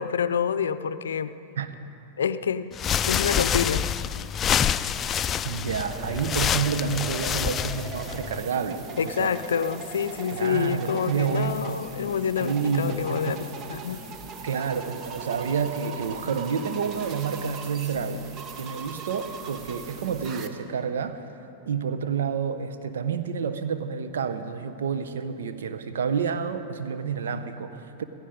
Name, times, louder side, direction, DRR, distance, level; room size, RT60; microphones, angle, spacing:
voice 1, 0.0-1.3 2.2-2.7 3.0-3.9 9.0-14.0, left 7 dB, 80° left, 13 dB, 0.5 m, -27 dB
sound 1, 2.7-8.4, left 8 dB, 30° left, 0.4 m, -27 dB
voice 2, 5.4-9.3 10.3-11.7 12.4-13.4 14.4-21.4 21.7-28.0, right 6 dB, 80° right, 9 dB, 0.9 m, -29 dB
sound 2, 5.9-20.5, right 5 dB, 35° right, 1.1 m, -40 dB
15.5 x 15.5 x 5.2 m, 2.7 s
hypercardioid pair, 105°, 0 cm